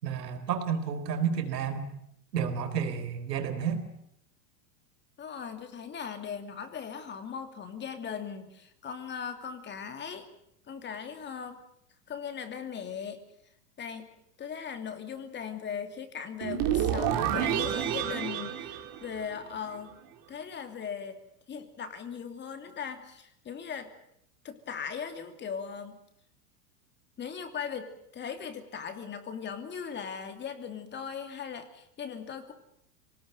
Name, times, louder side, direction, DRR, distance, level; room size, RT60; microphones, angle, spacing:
voice 1, 0.0-1.8 2.3-3.8, right 7 dB, 90° right, 8 dB, 4.2 m, -31 dB
voice 2, 5.2-10.3 10.7-11.6 12.1-13.2 13.8-14.1 14.4-20.0 20.3-21.2 21.5-23.9 24.4-26.0 27.2-32.5, left 7 dB, 20° left, 8 dB, 2.8 m, -39 dB
sound 1, 16.4-19.7, right 10 dB, 45° right, 3.4 m, -29 dB
25.0 x 19.0 x 9.3 m, 0.76 s
supercardioid pair, 140°, 47 cm